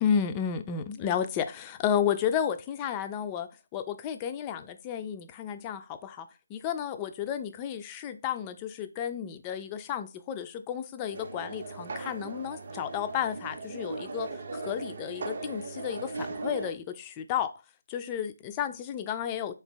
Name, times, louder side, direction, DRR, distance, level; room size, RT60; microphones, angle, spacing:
voice 1, 0.0-17.5 17.9-19.5, left 8 dB, 15° left, 0.3 m, -32 dB
sound 1, 11.1-16.7, right 3 dB, 40° right, 0.5 m, -38 dB
3.8 x 2.9 x 3.5 m
figure-of-eight pair, 155°, 0 cm